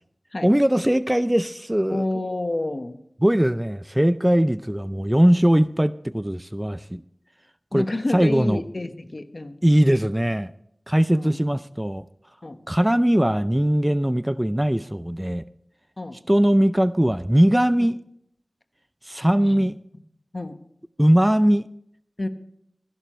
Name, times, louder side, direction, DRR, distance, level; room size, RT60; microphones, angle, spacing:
voice 1, 0.4-2.1 3.2-7.0 7.7-7.9 8.1-8.6 9.6-10.5 10.9-12.0 12.7-15.4 16.3-18.0 19.1-19.8 21.0-21.7, equal, 15° right, 14 dB, 0.4 m, -20 dB
voice 2, 1.9-3.0 7.7-9.6 11.1-11.4 12.4-12.6 16.0-16.2 19.4-19.7 20.3-20.6 22.2-22.3, left 2 dB, 55° left, 8 dB, 1.2 m, -29 dB
25.0 x 11.0 x 3.1 m, 0.72 s
wide cardioid pair, 55°, 0 cm